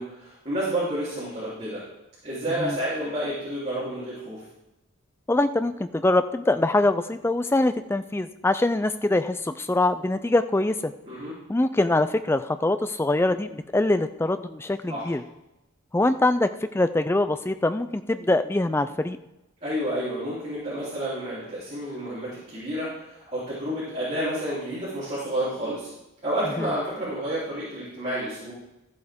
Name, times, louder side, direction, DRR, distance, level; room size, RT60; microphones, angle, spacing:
voice 1, 0.0-1.8 2.2-4.4 11.0-11.3 14.9-15.1 19.6-25.9 26.2-28.5, right 1 dB, 30° right, -11 dB, 3.5 m, -30 dB
voice 2, 5.3-10.9 11.5-15.2 15.9-19.2 26.6-26.7, left 2 dB, 10° left, 10 dB, 0.3 m, -23 dB
13.5 x 7.8 x 3.6 m, 0.92 s
head